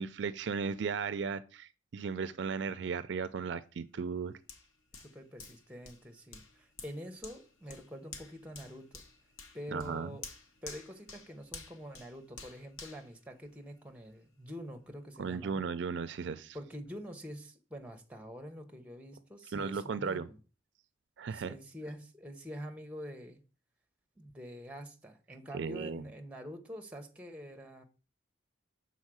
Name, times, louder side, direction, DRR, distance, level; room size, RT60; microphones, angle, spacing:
voice 1, 0.0-4.3 9.7-10.1 15.2-16.6 19.5-20.3 21.2-21.5 25.5-26.0, right 5 dB, 60° right, 0.4 m, -36 dB
Hands, 4.5-14.0 14.5-14.6, left 4 dB, 90° left, 1.1 m, -51 dB
voice 2, 4.9-9.0 9.5-10.2 10.6-15.6 16.5-20.4 21.3-23.4 24.2-27.8, equal, 5° right, 0.8 m, -46 dB
6.4 x 4.1 x 6.1 m
head